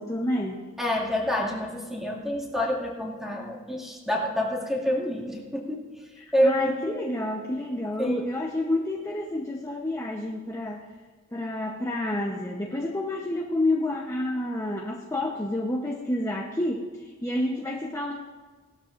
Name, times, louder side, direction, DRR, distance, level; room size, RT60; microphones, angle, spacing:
voice 1, 0.0-0.6 1.4-1.5 6.2-10.8 11.3-18.1, left 1 dB, 15° left, -1 dB, 0.8 m, -29 dB
voice 2, 0.8-5.8 6.3-7.0 8.0-8.3, equal, ahead, -3 dB, 2.2 m, -27 dB
18.5 x 12.5 x 2.5 m, 1.5 s
head